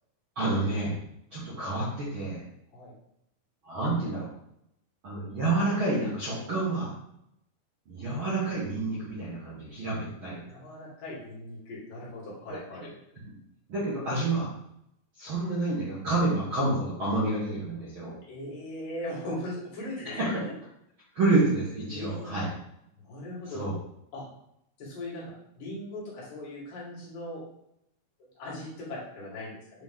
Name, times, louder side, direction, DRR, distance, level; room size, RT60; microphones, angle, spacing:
voice 1, 0.3-0.9 1.3-2.4 3.6-4.3 5.0-6.9 7.9-10.4 12.5-12.6 13.2-13.3 13.7-14.5 15.2-18.1 20.0-20.3 21.1-22.5 23.5-23.7, right 2 dB, 55° right, -9 dB, 1.5 m, -28 dB
voice 2, 10.5-12.8 18.3-20.5 21.9-22.3 23.0-23.6 24.1-24.3 24.8-27.4 28.4-29.8, left 1 dB, 65° left, -7 dB, 3.7 m, -39 dB
8.1 x 3.1 x 3.7 m, 0.78 s
omnidirectional pair, 4.2 m